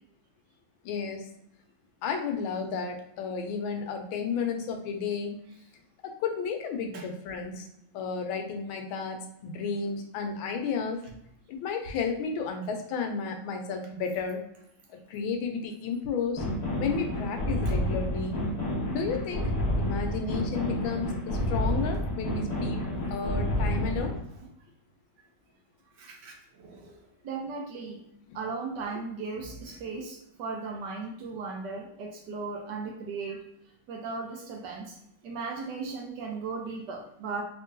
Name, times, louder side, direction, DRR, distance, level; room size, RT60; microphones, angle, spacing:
voice 1, 0.8-1.3 2.0-5.4 6.0-7.7 7.9-11.0 11.5-14.4 14.9-16.4 16.8-18.4 18.9-19.5 19.8-22.8 23.1-24.2 28.3-28.4, left 5 dB, 85° left, 4 dB, 1.5 m, -32 dB
sound 1, 16.4-24.2, left 1 dB, 40° left, 0.5 m, -29 dB
voice 2, 26.0-27.0 27.2-28.0 28.3-33.4 33.9-35.0 35.2-37.4, right 4 dB, 70° right, 2 dB, 1.1 m, -37 dB
3.6 x 3.0 x 2.5 m, 0.74 s
omnidirectional pair, 2.2 m